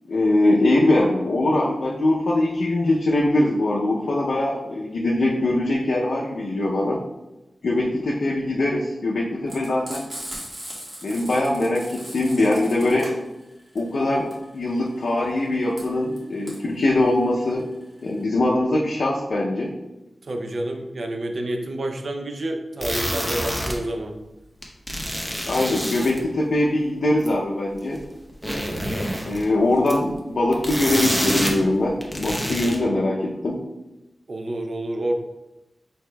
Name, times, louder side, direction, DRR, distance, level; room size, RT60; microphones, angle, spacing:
voice 1, 0.1-7.0 7.6-10.1 11.0-13.1 13.7-14.3 14.5-17.7 18.0-19.7 25.5-28.0 29.2-33.6, left 1 dB, 75° left, -3 dB, 0.5 m, -22 dB
Frying (food), 9.5-18.2, equal, 30° right, 1.5 m, -39 dB
voice 2, 20.2-24.2 34.3-35.1, right 1 dB, 60° right, 4 dB, 0.5 m, -28 dB
sound 1, 22.8-23.8 24.6-26.2 27.2-27.3 28.0-28.1 28.3-29.4 29.9-30.1 30.5-31.6 31.9-32.8, equal, 5° right, 0.8 m, -27 dB
5.0 x 4.2 x 2.2 m, 0.98 s
wide cardioid pair, 90°, 0 cm